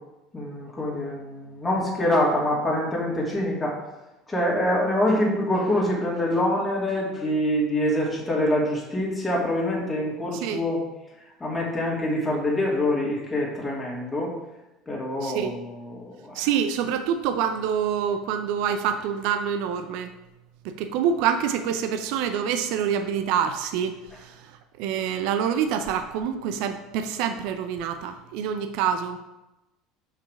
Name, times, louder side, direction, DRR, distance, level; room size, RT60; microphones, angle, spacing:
voice 1, 0.3-3.8 4.3-10.8 11.4-14.3 14.9-16.5, left 1 dB, 15° left, -5 dB, 2.5 m, -25 dB
voice 2, 10.3-10.6 15.2-15.5 16.3-20.1 20.6-29.2, right 8 dB, 65° right, 8 dB, 0.5 m, -26 dB
5.6 x 4.9 x 4.8 m, 0.98 s
hypercardioid pair, 70°, 0 cm